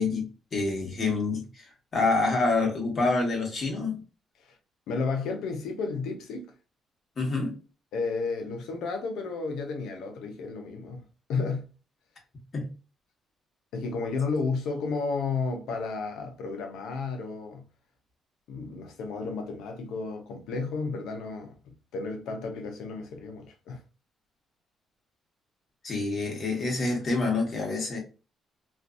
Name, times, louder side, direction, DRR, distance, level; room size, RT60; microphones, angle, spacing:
voice 1, 0.0-4.0 7.2-7.5 12.5-12.7 25.8-28.0, left 3 dB, 45° left, 1.2 m, -27 dB
voice 2, 4.9-6.5 7.9-11.0 11.3-11.7 13.7-17.6 18.5-23.8, left 4 dB, 85° left, 0.7 m, -32 dB
2.5 x 2.5 x 2.4 m
cardioid pair, 90°, 0 cm